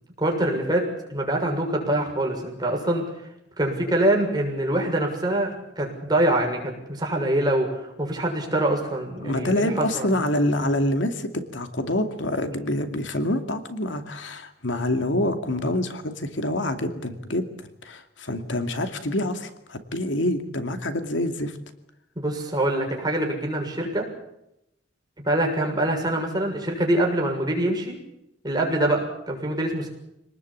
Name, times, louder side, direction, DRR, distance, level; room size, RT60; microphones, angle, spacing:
voice 1, 0.2-3.0 3.6-10.1 22.2-24.1 25.2-28.0 28.4-29.9, right 1 dB, 20° right, 1 dB, 6.8 m, -24 dB
voice 2, 9.2-17.4 17.8-21.6, left 1 dB, 80° left, 7 dB, 2.5 m, -26 dB
26.5 x 19.5 x 8.6 m, 0.82 s
head